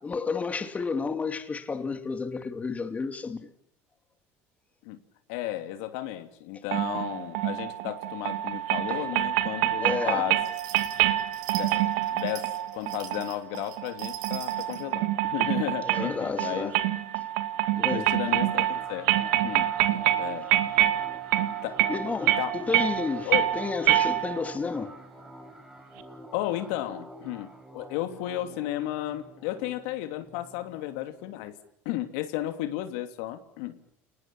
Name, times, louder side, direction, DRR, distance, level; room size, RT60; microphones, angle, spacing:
voice 1, 0.0-3.5 8.9-9.2 9.8-10.3 15.8-16.8 17.8-18.1 21.9-25.0, left 4 dB, 20° left, 2.6 m, -31 dB
voice 2, 5.3-10.4 11.5-11.8 12.1-16.7 17.7-19.7 20.2-20.5 21.6-21.8 22.4-22.5 23.2-23.5 26.3-31.5 31.8-33.7, left 14 dB, 80° left, 2.9 m, -33 dB
sound 1, 6.7-24.6, right 14 dB, 85° right, 2.2 m, -27 dB
sound 2, 10.4-14.8, right 11 dB, 65° right, 7.1 m, -43 dB
sound 3, 18.3-31.5, right 1 dB, 5° right, 7.4 m, -47 dB
30.0 x 19.5 x 7.3 m
supercardioid pair, 110°, 7 cm